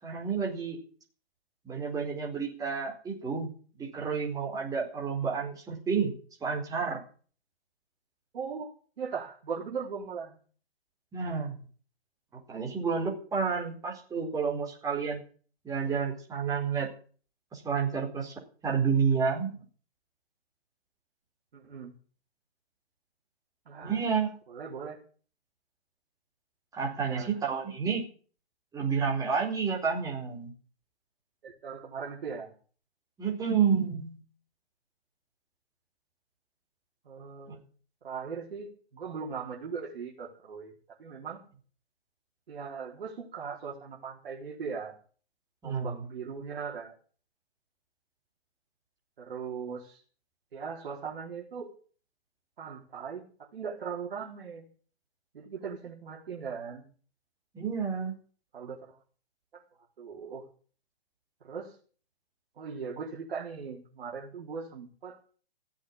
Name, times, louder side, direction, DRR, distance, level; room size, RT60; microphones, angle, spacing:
voice 1, 0.0-0.8 1.6-3.5 3.8-6.1 6.4-7.0 11.1-11.6 12.3-15.2 15.6-16.9 17.5-19.6 23.8-24.4 26.7-28.0 28.7-30.5 33.2-34.2 37.5-37.6 45.6-46.0 57.5-58.1, right 6 dB, 10° right, -1 dB, 4.4 m, -30 dB
voice 2, 8.3-10.4 21.5-21.9 23.7-24.0 24.5-25.0 27.0-27.3 31.4-32.5 37.0-37.6 38.0-41.4 42.5-44.9 45.6-46.9 49.2-50.0 50.5-51.7 52.6-53.2 53.5-54.6 55.3-56.9 58.5-59.0 59.5-59.6 60.0-60.4 61.4-61.8 62.6-65.2, right 6 dB, 65° right, -2 dB, 4.4 m, -39 dB
16.5 x 8.3 x 8.8 m, 0.42 s
hypercardioid pair, 145°, 31 cm